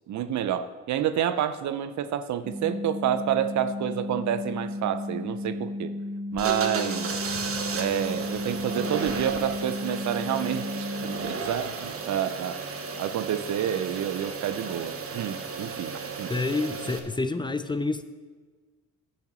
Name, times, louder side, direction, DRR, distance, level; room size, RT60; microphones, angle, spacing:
voice 1, 0.1-5.9 6.3-7.1 7.7-12.6 13.0-15.9 16.2-16.3, right 10 dB, 70° right, 12 dB, 0.7 m, -29 dB
sound 1, 2.4-11.2, left 2 dB, 10° right, 2.1 m, -34 dB
sound 2, 6.3-17.0, right 5 dB, 50° right, 1.3 m, -34 dB
voice 2, 16.3-18.0, left 3 dB, 15° left, 10 dB, 0.6 m, -28 dB
11.0 x 5.7 x 6.9 m, 1.4 s
cardioid pair, 90°, 30 cm